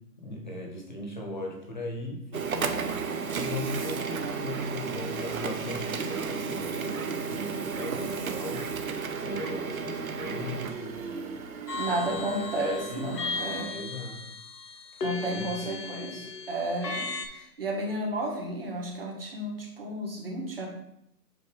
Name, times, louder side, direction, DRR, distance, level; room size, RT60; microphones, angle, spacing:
voice 1, 0.2-2.8 3.2-8.7 9.2-11.4 11.9-13.1 13.4-14.3 15.0-16.3, left 1 dB, 30° left, 1 dB, 0.9 m, -38 dB
Printer, 2.3-13.6, right 5 dB, 60° right, 0.7 m, -34 dB
sound 1, 11.7-17.3, left 4 dB, 80° left, 1.2 m, -36 dB
voice 2, 11.7-13.7 15.0-20.7, right 1 dB, 35° right, -1 dB, 1.2 m, -33 dB
7.5 x 2.6 x 4.8 m, 0.79 s
hypercardioid pair, 175°, 47 cm